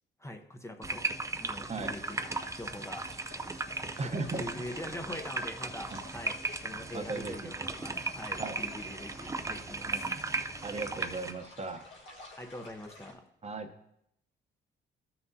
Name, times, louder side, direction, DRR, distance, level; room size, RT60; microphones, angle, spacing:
voice 1, 0.2-1.1 1.4-3.1 4.0-10.1 12.4-13.2, left 1 dB, 15° left, 5 dB, 0.8 m, -43 dB
sound 1, 0.8-11.3, right 3 dB, 15° right, 0.5 m, -37 dB
sound 2, 1.9-13.1, left 2 dB, 75° left, 1.6 m, -52 dB
voice 2, 4.0-4.4 6.9-7.3 8.4-8.6 9.9-10.0 10.6-11.8 13.4-13.7, right 3 dB, 35° right, 6 dB, 0.9 m, -36 dB
13.5 x 5.9 x 2.7 m, 0.77 s
cardioid pair, 90°, 20 cm